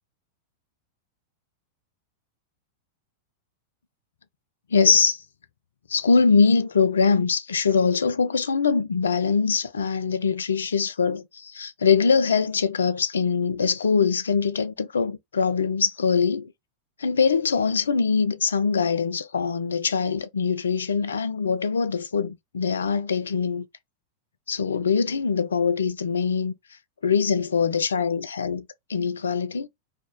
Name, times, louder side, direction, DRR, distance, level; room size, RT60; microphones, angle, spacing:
voice 1, 4.7-5.2 5.9-16.5 17.0-23.7 24.5-26.5 27.0-29.7, left 5 dB, 70° left, 0.3 m, -23 dB
2.7 x 2.1 x 3.0 m
figure-of-eight pair, 95°, 0 cm